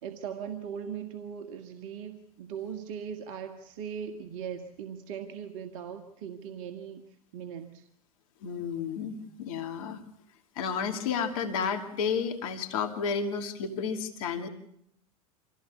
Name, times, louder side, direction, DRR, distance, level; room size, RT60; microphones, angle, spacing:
voice 1, 0.0-7.0 7.3-7.9, right 8 dB, 60° right, 7 dB, 1.8 m, -39 dB
voice 2, 8.4-10.0 10.6-14.5, left 6 dB, 65° left, 6 dB, 2.7 m, -31 dB
26.0 x 16.0 x 8.5 m, 0.73 s
hypercardioid pair, 90°, 19 cm